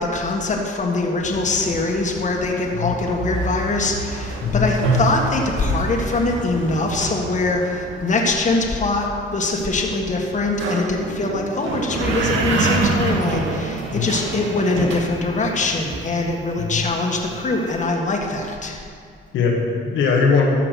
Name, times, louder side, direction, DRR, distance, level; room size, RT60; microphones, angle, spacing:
voice 1, 0.0-18.8, left 2 dB, 40° left, 0 dB, 1.7 m, -23 dB
sound 1, 1.2-16.7, right 3 dB, 80° right, 1.5 m, -27 dB
voice 2, 16.6-16.9 19.3-20.5, left 5 dB, 80° left, -1 dB, 1.6 m, -20 dB
13.5 x 5.9 x 6.4 m, 2.2 s
cardioid pair, 90°, 20 cm